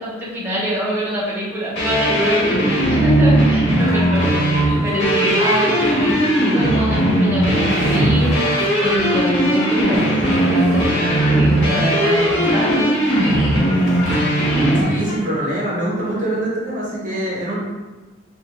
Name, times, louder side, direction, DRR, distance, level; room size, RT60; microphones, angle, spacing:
voice 1, 0.0-12.9, equal, 10° right, -9 dB, 1.0 m, -24 dB
sound 1, 1.8-14.8, right 1 dB, 65° left, 1.4 m, -18 dB
sound 2, 3.8-15.2, left 1 dB, 40° left, 1.0 m, -31 dB
voice 2, 14.8-17.6, right 1 dB, 45° right, -5 dB, 1.1 m, -24 dB
4.9 x 2.6 x 3.3 m, 1.3 s
head